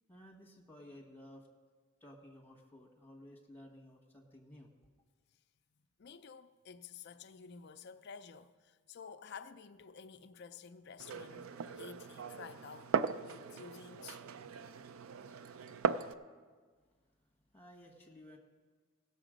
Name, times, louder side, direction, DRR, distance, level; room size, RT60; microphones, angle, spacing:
voice 1, 0.1-1.5 2.0-4.7 16.8-18.4, left 1 dB, 10° left, 1.3 m, -56 dB
voice 2, 6.0-14.2, left 6 dB, 50° left, 0.4 m, -52 dB
Glass, 11.0-16.1, right 6 dB, 70° right, 0.4 m, -38 dB
17.0 x 6.9 x 5.0 m
head